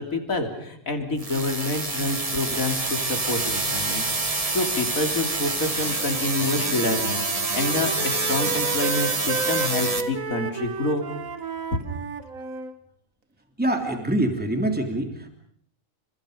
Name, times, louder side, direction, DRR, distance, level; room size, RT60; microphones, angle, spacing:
voice 1, 0.0-11.1 11.7-11.8, left 2 dB, 85° left, 5 dB, 3.7 m, -28 dB
sound 1, 1.2-10.0, right 3 dB, 25° right, 1.7 m, -27 dB
Wind instrument woodwind instrument, 6.0-12.7, right 5 dB, 75° right, 2.0 m, -32 dB
voice 2, 13.6-15.3, right 1 dB, 5° right, 3 dB, 3.3 m, -25 dB
30.0 x 26.5 x 5.2 m, 0.65 s
omnidirectional pair, 1.4 m